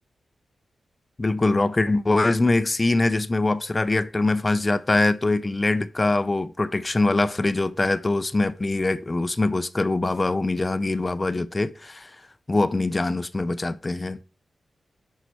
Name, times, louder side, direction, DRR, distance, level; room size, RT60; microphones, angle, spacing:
voice 1, 1.2-12.1 12.5-14.2, left 2 dB, 25° left, 0.5 m, -23 dB
6.7 x 5.7 x 4.5 m
wide cardioid pair, 110°, 0 cm